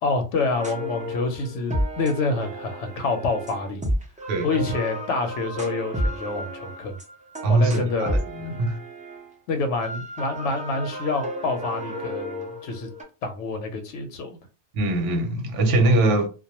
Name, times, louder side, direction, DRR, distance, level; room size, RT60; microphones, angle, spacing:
voice 1, 0.0-3.8 4.4-7.0 7.5-8.2 9.5-12.9 13.2-14.4, left 3 dB, 90° left, 0.9 m, -27 dB
sound 1, 0.5-9.3 9.8-13.0, equal, 10° right, 0.4 m, -32 dB
voice 2, 7.4-8.8 14.7-16.3, right 2 dB, 90° right, 0.9 m, -22 dB
2.2 x 2.1 x 2.8 m
omnidirectional pair, 1.2 m